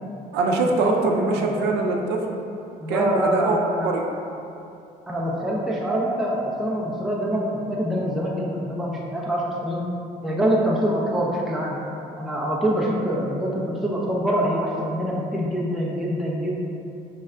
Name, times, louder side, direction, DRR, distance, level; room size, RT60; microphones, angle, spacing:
voice 1, 0.3-2.4 2.9-4.0, right 3 dB, 85° right, 1 dB, 0.4 m, -23 dB
voice 2, 0.8-1.7 2.8-4.0 5.1-9.8 10.2-11.8 12.2-16.5, equal, ahead, -4 dB, 0.4 m, -25 dB
3.2 x 2.2 x 3.6 m, 2.7 s
cardioid pair, 110°, 17 cm